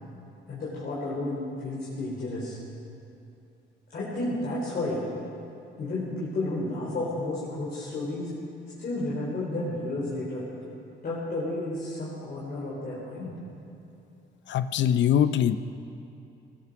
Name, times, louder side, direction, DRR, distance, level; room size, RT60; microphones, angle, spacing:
voice 1, 0.5-2.6 3.9-5.0 5.8-8.3 8.8-10.4 11.0-13.4, left 2 dB, 50° left, -7 dB, 3.9 m, -32 dB
voice 2, 14.5-15.6, left 9 dB, 65° left, 13 dB, 0.6 m, -22 dB
20.0 x 12.5 x 5.9 m, 2.6 s
cardioid pair, 90°, 20 cm